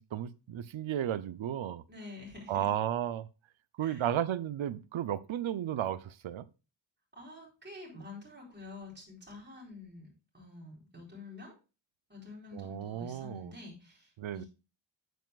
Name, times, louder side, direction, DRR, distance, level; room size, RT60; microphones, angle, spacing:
voice 1, 0.0-1.8 2.5-3.3 3.8-6.5 12.5-13.5 14.2-14.4, right 10 dB, 90° right, 0.6 m, -34 dB
voice 2, 1.9-2.7 3.8-4.1 7.2-11.5 12.1-14.5, left 3 dB, 25° right, 4.2 m, -48 dB
9.1 x 8.2 x 2.3 m
wide cardioid pair, 145°, 45 cm